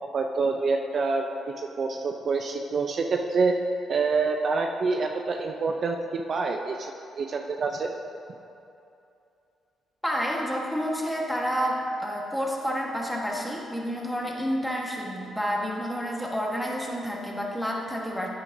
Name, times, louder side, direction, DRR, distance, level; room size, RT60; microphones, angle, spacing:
voice 1, 0.0-1.3 1.6-3.6 3.9-7.9, right 4 dB, 50° right, 4 dB, 0.5 m, -27 dB
voice 2, 10.0-18.3, equal, ahead, -2 dB, 1.3 m, -29 dB
9.5 x 9.0 x 2.7 m, 2.7 s
cardioid pair, 90°, 0 cm